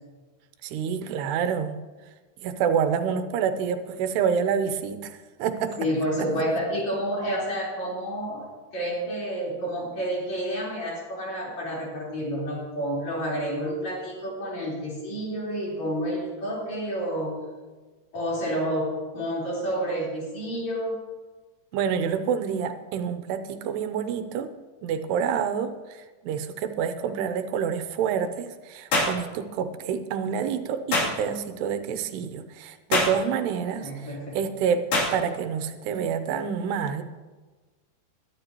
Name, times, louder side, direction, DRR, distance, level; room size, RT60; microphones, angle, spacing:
voice 1, 0.6-1.8 2.4-5.8 6.2-6.3 21.7-24.5 24.8-37.0, right 7 dB, 90° right, 9 dB, 2.9 m, -28 dB
voice 2, 5.8-8.4 8.7-17.4 18.1-21.0 33.8-34.4, equal, 45° left, -5 dB, 5.3 m, -29 dB
sound 1, 28.9-29.2 30.9-31.1 32.9-33.2 34.9-35.1, left 2 dB, 85° left, 5.1 m, -23 dB
22.0 x 11.5 x 3.0 m, 1.3 s
omnidirectional pair, 4.6 m